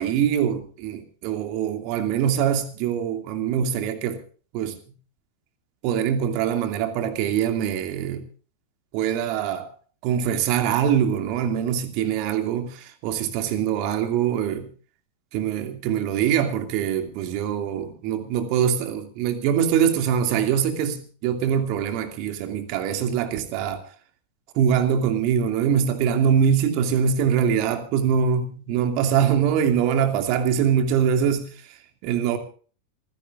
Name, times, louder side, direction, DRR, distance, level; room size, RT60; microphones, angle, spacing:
voice 1, 0.0-4.2 4.5-4.8 5.8-8.3 8.9-9.7 10.0-14.7 15.3-23.8 24.5-32.4, right 8 dB, 45° right, 2.6 m, -23 dB
27.0 x 16.0 x 2.6 m
figure-of-eight pair, 90°, 0 cm